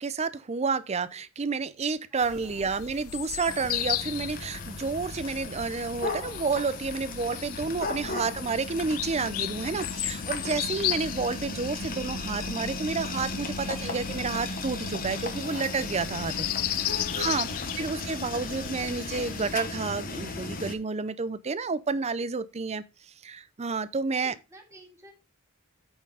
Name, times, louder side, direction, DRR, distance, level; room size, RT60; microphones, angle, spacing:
voice 1, 0.0-17.5 17.8-24.3, right 4 dB, 30° right, 0.5 m, -30 dB
voice 2, 2.1-2.7 16.8-17.9 24.1-25.1, right 1 dB, 15° right, 2.0 m, -53 dB
sound 1, 2.2-19.6, left 12 dB, 75° left, 0.5 m, -36 dB
sound 2, 3.5-20.7, left 3 dB, 40° left, 1.1 m, -36 dB
8.7 x 4.6 x 4.8 m
head